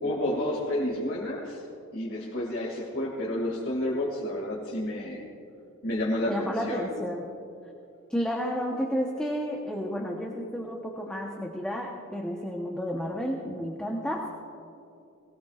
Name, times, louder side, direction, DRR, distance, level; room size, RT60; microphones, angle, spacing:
voice 1, 0.0-1.6 1.9-5.2 5.8-6.9, left 1 dB, 55° left, -4 dB, 2.4 m, -30 dB
voice 2, 6.3-7.3 8.1-14.3, equal, 5° left, -2 dB, 1.0 m, -31 dB
21.5 x 18.5 x 2.5 m, 2.7 s
head